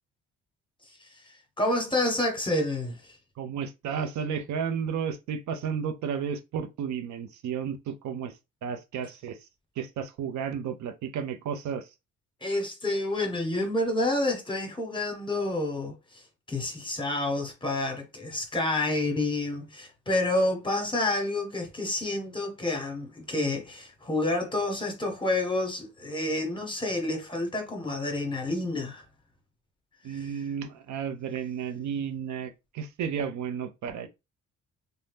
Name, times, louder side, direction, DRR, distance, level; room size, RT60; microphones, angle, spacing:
voice 1, 1.6-3.0 12.4-16.0 16.5-29.0 30.1-30.3, left 2 dB, 15° left, 1.0 m, -29 dB
voice 2, 3.4-8.3 8.6-9.4 9.8-11.9 30.0-34.1, right 7 dB, 70° right, 0.6 m, -32 dB
2.7 x 2.1 x 3.4 m
cardioid pair, 90°, 30 cm